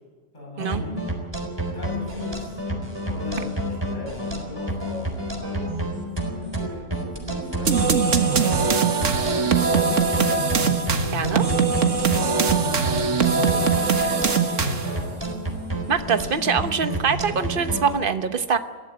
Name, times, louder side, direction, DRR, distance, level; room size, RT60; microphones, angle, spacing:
voice 1, 0.3-1.0 1.7-2.6 3.0-5.6 6.2-12.5 13.4-15.2, left 1 dB, 35° left, -5 dB, 8.3 m, -38 dB
sound 1, 0.6-18.0, right 1 dB, 20° right, 4.1 m, -29 dB
sound 2, 7.7-15.0, right 5 dB, 70° right, 1.8 m, -21 dB
voice 2, 11.1-11.4 14.1-14.2 15.9-18.6, right 6 dB, 45° right, 9 dB, 1.2 m, -24 dB
22.0 x 15.0 x 9.5 m, 1.5 s
omnidirectional pair, 1.3 m